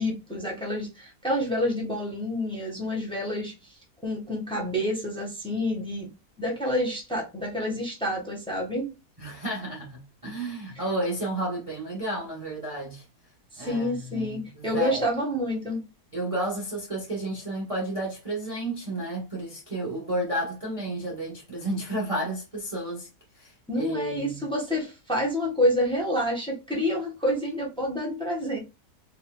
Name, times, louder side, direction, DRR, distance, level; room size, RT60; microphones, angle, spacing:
voice 1, 0.0-6.1 6.4-8.9 13.5-15.8 23.7-28.6, left 1 dB, 5° left, 1.1 m, -28 dB
voice 2, 9.2-13.0 13.6-15.0 16.1-23.1 23.4-24.5, right 1 dB, 25° right, 0.9 m, -32 dB
4.5 x 2.9 x 2.2 m
omnidirectional pair, 1.7 m